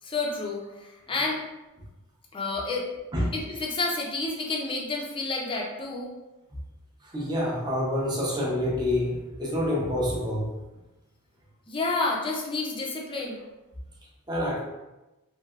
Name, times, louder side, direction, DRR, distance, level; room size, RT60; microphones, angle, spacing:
voice 1, 0.0-1.4 2.3-2.9 3.3-6.1 11.7-13.4, left 3 dB, 25° left, -1 dB, 0.4 m, -30 dB
voice 2, 7.0-10.5 14.3-14.6, left 1 dB, 20° right, -4 dB, 0.6 m, -27 dB
3.2 x 2.6 x 2.4 m, 1.0 s
head